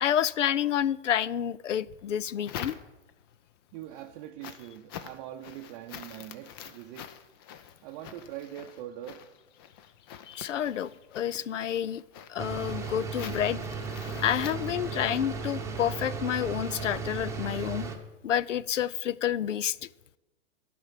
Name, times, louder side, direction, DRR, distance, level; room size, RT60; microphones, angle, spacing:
voice 1, 0.0-2.7 10.3-12.0 12.3-13.6 14.2-17.9 18.2-19.8, left 10 dB, 90° left, 0.5 m, -29 dB
sound 1, 1.8-3.3 3.7-15.3, left 9 dB, 20° left, 0.3 m, -46 dB
voice 2, 3.7-7.1 7.8-9.2, right 12 dB, 35° right, 0.6 m, -42 dB
sound 2, 12.4-18.0, right 4 dB, 10° right, 0.9 m, -35 dB
12.0 x 5.1 x 7.4 m
hypercardioid pair, 125°, 36 cm